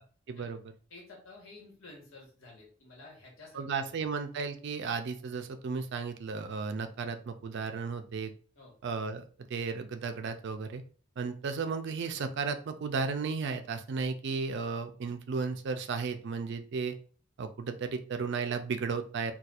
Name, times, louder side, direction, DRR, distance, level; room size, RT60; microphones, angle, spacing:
voice 1, 0.3-0.6 3.5-8.3 8.8-9.2 9.5-10.8 11.2-16.9 17.4-19.3, right 5 dB, 60° right, 8 dB, 0.4 m, -34 dB
voice 2, 0.9-4.1 8.5-8.7, left 2 dB, 85° left, -2 dB, 1.2 m, -52 dB
4.2 x 2.3 x 2.4 m, 0.42 s
head